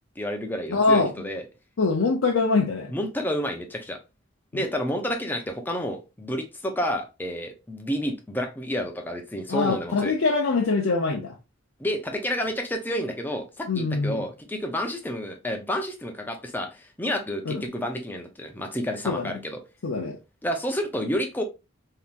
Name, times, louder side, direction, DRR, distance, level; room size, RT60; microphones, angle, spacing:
voice 1, 0.2-1.4 2.9-4.0 4.5-10.1 11.8-19.6 20.4-21.4, equal, 10° left, 0.6 m, -30 dB
voice 2, 0.7-1.1 1.8-2.9 4.5-4.6 9.5-11.4 13.7-14.2 17.5-17.6 19.1-19.3 19.8-20.2, left 3 dB, 80° left, 0.6 m, -23 dB
3.5 x 2.8 x 2.4 m
head